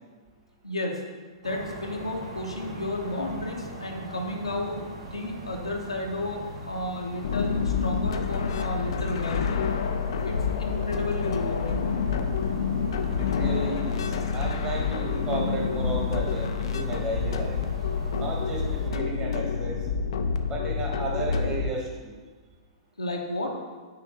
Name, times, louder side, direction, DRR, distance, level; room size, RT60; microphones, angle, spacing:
voice 1, 0.6-1.0 1.4-4.8 5.1-9.6 10.2-11.9 23.0-23.6, left 1 dB, 85° left, 1 dB, 0.9 m, -32 dB
sound 1, 1.4-18.9, right 1 dB, 70° right, 1.1 m, -40 dB
sound 2, 7.2-21.7, left 6 dB, 65° left, 0.4 m, -28 dB
voice 2, 13.2-17.6 18.1-19.8 20.5-22.1, right 2 dB, 25° right, -2 dB, 1.4 m, -33 dB
5.8 x 3.3 x 5.0 m, 1.4 s
figure-of-eight pair, 110°, 3 cm